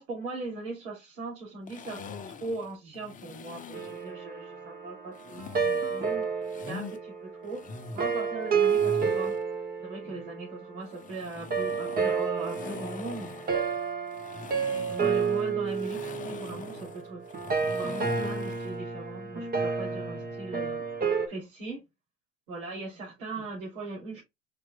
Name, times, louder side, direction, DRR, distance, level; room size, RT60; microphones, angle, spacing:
voice 1, 0.0-2.0 2.4-5.6 5.9-6.3 6.7-7.7 7.9-9.4 9.8-13.4 14.9-17.3 17.7-20.8 21.3-21.8 22.5-24.2, right 3 dB, 80° right, 2.8 m, -39 dB
sound 1, 1.7-4.1 5.1-7.0 7.4-9.4 10.8-18.8, left 5 dB, 20° left, 0.8 m, -43 dB
sound 2, 3.7-10.9 11.5-21.3, right 5 dB, 25° right, 1.1 m, -30 dB
5.1 x 4.6 x 2.2 m
hypercardioid pair, 110°, 38 cm